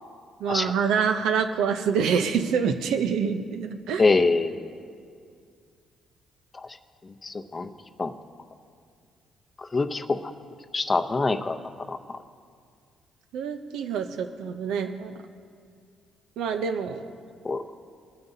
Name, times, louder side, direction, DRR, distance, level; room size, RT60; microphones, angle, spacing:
voice 1, 0.4-4.0 13.3-15.1 16.4-17.0, right 6 dB, 90° right, 8 dB, 0.6 m, -26 dB
voice 2, 4.0-4.7 6.5-6.7 7.2-7.7 8.0-8.1 9.6-10.3 10.7-12.0 17.4-17.6, left 3 dB, 30° left, 8 dB, 0.6 m, -25 dB
20.0 x 9.4 x 2.7 m, 2.2 s
cardioid pair, 90°, 0 cm